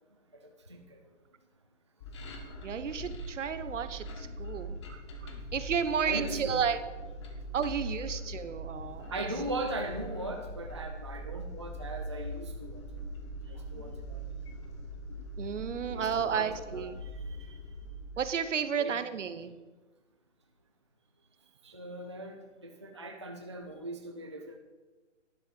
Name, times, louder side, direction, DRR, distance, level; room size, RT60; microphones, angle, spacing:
voice 1, 0.3-1.0 6.1-6.6 9.1-12.8 13.5-14.2 15.9-17.6 18.8-19.0 21.6-24.6, right 1 dB, 25° right, 3 dB, 0.3 m, -39 dB
sound 1, 2.0-18.3, right 1 dB, 25° left, 0.8 m, -41 dB
voice 2, 2.6-6.8 7.5-9.3 13.8-13.9 15.4-17.0 18.2-19.6, right 7 dB, 70° right, 12 dB, 0.9 m, -33 dB
11.0 x 7.1 x 5.2 m, 1.2 s
hypercardioid pair, 155°, 38 cm